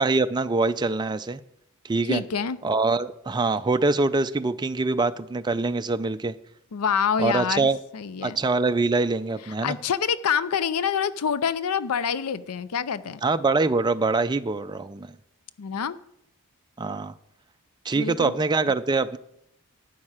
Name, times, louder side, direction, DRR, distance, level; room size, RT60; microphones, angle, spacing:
voice 1, 0.0-1.4 1.8-2.2 2.6-6.3 7.2-7.8 8.2-9.8 13.2-15.2 16.8-17.1 17.8-19.2, right 3 dB, 20° right, 9 dB, 0.4 m, -24 dB
voice 2, 2.1-2.6 6.7-8.4 9.6-13.2 15.6-16.0 18.0-18.4, left 7 dB, 70° left, 16 dB, 0.5 m, -26 dB
11.5 x 8.7 x 4.9 m, 0.75 s
head